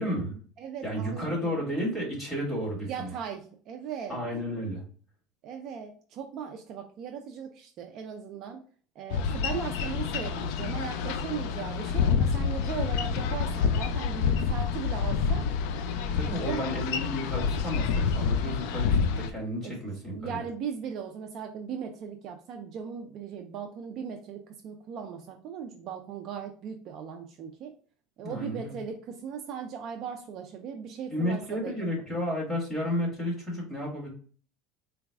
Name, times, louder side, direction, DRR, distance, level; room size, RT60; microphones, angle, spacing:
voice 1, 0.0-0.4 0.8-3.1 4.1-4.8 16.1-20.4 28.2-28.7 31.1-34.1, equal, 5° left, -4 dB, 1.6 m, -32 dB
voice 2, 0.6-1.6 2.8-4.2 5.4-8.6 9.0-15.5 16.5-16.8 19.6-19.8 20.1-27.7 28.2-31.8, right 7 dB, 40° right, 4 dB, 0.4 m, -38 dB
Boat Water vehicle, 9.1-19.3, left 6 dB, 70° left, 0.4 m, -28 dB
3.9 x 2.3 x 3.4 m, 0.42 s
cardioid pair, 160°, 0 cm